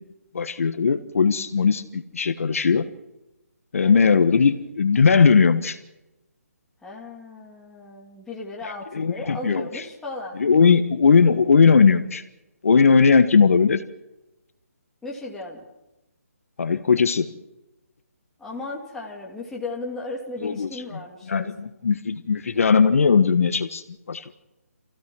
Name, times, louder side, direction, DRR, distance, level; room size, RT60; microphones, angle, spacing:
voice 1, 0.3-2.9 3.7-5.8 8.6-9.6 10.4-12.2 12.6-13.8 16.6-17.2 20.4-20.7 21.3-23.8 24.1-24.4, left 5 dB, 60° left, 10 dB, 1.4 m, -18 dB
voice 2, 6.8-10.4 15.0-15.6 18.4-21.5, left 2 dB, 5° left, -3 dB, 2.6 m, -35 dB
27.0 x 16.0 x 6.2 m, 0.99 s
hypercardioid pair, 160°, 8 cm